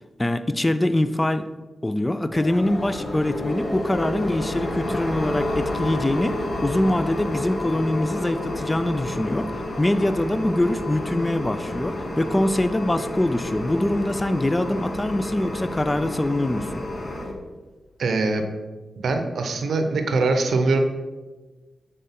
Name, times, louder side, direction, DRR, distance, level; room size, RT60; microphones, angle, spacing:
voice 1, 0.2-1.4 1.8-6.4 6.6-9.5 9.8-16.8, left 1 dB, 20° left, 11 dB, 0.3 m, -23 dB
sound 1, 2.3-17.3, left 1 dB, 40° left, 1.0 m, -30 dB
voice 2, 18.0-18.4 19.0-20.8, right 3 dB, 75° right, 5 dB, 0.6 m, -22 dB
6.7 x 3.7 x 4.2 m, 1.3 s
cardioid pair, 75°, 0 cm